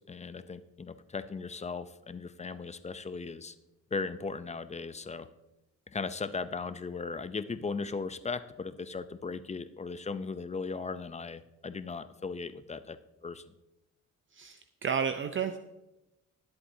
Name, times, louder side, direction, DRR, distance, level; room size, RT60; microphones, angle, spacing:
voice 1, 0.0-3.6 3.9-5.3 5.9-13.6, left 4 dB, 20° left, 12 dB, 0.6 m, -37 dB
voice 2, 14.4-15.6, right 7 dB, 40° right, 8 dB, 0.6 m, -32 dB
19.5 x 8.0 x 2.8 m, 0.95 s
cardioid pair, 90°, 30 cm